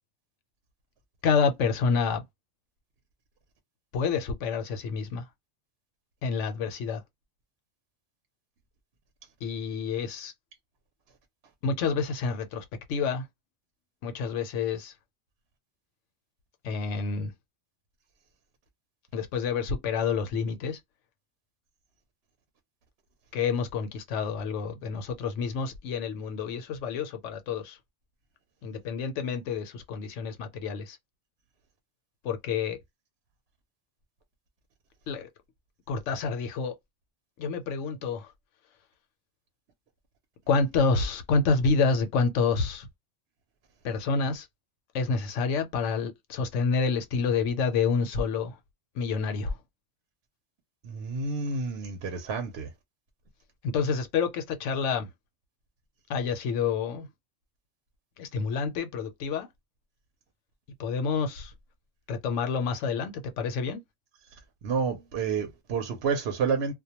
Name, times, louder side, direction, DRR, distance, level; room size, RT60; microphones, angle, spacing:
voice 1, 1.2-2.2 3.9-5.3 6.2-7.0 9.4-10.3 11.6-13.3 14.0-14.9 16.6-17.3 19.1-20.8 23.3-27.8 28.6-31.0 32.2-32.8 35.1-35.3 35.9-36.7 37.4-38.3 40.5-42.9 43.8-44.5 44.9-48.6 48.9-49.6 53.6-55.1 56.1-57.1 58.2-59.5 60.8-61.5 62.1-63.8, left 5 dB, 85° left, 0.9 m, -28 dB
voice 2, 50.8-52.7 64.6-66.7, right 5 dB, 65° right, 0.8 m, -29 dB
2.2 x 2.1 x 2.8 m
omnidirectional pair, 1.2 m